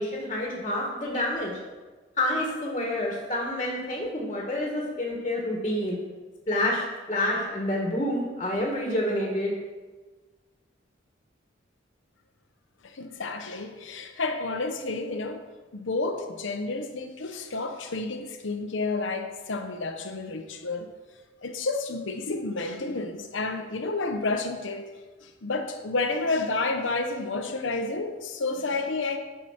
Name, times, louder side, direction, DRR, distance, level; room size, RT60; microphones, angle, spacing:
voice 1, 0.0-1.6 2.2-6.0 6.5-9.5, left 1 dB, 25° left, -2 dB, 1.7 m, -28 dB
voice 2, 12.8-15.4 15.7-20.9 21.4-24.9 25.2-29.2, left 3 dB, 80° left, 5 dB, 0.8 m, -30 dB
9.3 x 5.8 x 5.8 m, 1.3 s
head